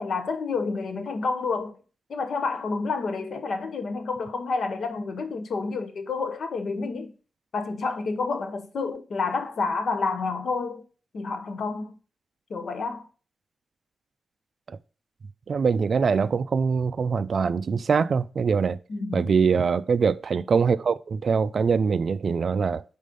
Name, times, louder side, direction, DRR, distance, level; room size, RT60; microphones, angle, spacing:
voice 1, 0.0-1.7 2.1-7.1 7.5-10.8 11.1-11.9 12.5-13.1 18.9-19.2, left 4 dB, 60° left, 1.0 m, -29 dB
voice 2, 15.5-18.8 19.1-22.8, right 5 dB, 50° right, 0.3 m, -23 dB
5.2 x 4.1 x 5.3 m
wide cardioid pair, 130°, 0 cm